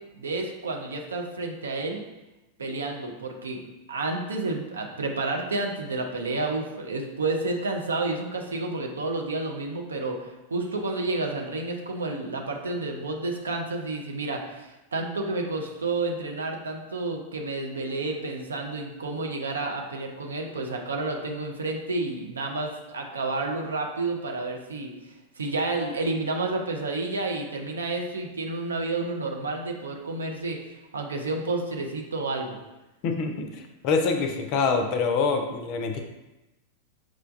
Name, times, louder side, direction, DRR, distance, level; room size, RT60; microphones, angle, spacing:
voice 1, 0.0-2.0 2.6-3.6 3.9-24.9 25.4-32.6, right 2 dB, 70° right, 2 dB, 0.5 m, -30 dB
voice 2, 33.0-36.0, left 4 dB, 45° left, 5 dB, 0.5 m, -25 dB
6.0 x 2.2 x 2.5 m, 1.0 s
figure-of-eight pair, 90°, 0 cm